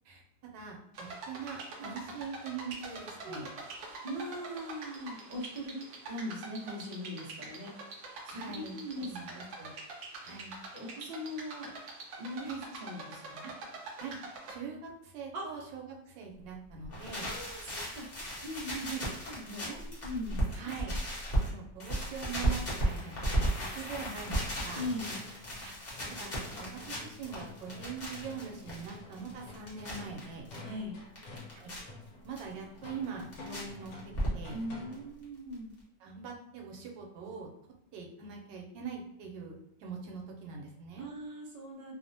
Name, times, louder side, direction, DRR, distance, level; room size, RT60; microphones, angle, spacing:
voice 1, 0.5-3.5 8.3-9.7 10.2-10.6 12.4-12.6 13.4-13.5 14.0-14.2 14.5-17.3 18.8-19.0 19.6-20.0 20.5-21.0 21.5-23.4 23.7-24.8 25.6-25.7 26.2-26.3 26.6-30.5 31.5-31.7 32.2-33.9 34.3-34.6 36.0-37.5 37.9-41.1, right 6 dB, 85° right, 1 dB, 1.3 m, -43 dB
sound 1, 0.9-14.6, right 3 dB, 70° right, 1.0 m, -45 dB
voice 2, 4.0-5.8 6.1-7.9 8.2-9.4 10.7-11.7 12.2-13.5 15.3-15.7 17.2-18.1 18.4-18.9 19.3-19.7 20.0-20.5 24.7-25.2 30.6-31.0 34.5-35.7 41.0-41.9, left 1 dB, 50° right, -4 dB, 0.5 m, -40 dB
sound 2, 16.8-21.5 21.8-30.6 30.9-31.8 32.4-32.5 32.8-33.6 33.9-34.6 34.9-35.0 35.2-35.3 35.5-35.6, right 1 dB, 45° left, 0.8 m, -35 dB
sound 3, 23.9-35.2, left 2 dB, 80° left, 1.3 m, -49 dB
3.1 x 2.0 x 2.5 m, 0.82 s
omnidirectional pair, 1.9 m